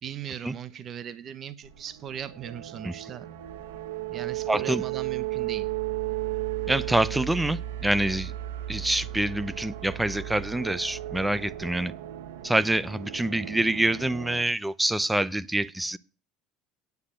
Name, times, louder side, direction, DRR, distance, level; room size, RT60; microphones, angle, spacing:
voice 1, 0.0-3.3 4.1-5.7, right 9 dB, 40° right, 1.0 m, -38 dB
sound 1, 1.6-14.4, right 14 dB, 85° right, 1.4 m, -35 dB
voice 2, 4.5-4.8 6.7-8.3 8.7-11.9 12.4-16.0, right 1 dB, 10° right, 0.6 m, -26 dB
9.6 x 6.6 x 6.4 m
supercardioid pair, 105°, 0 cm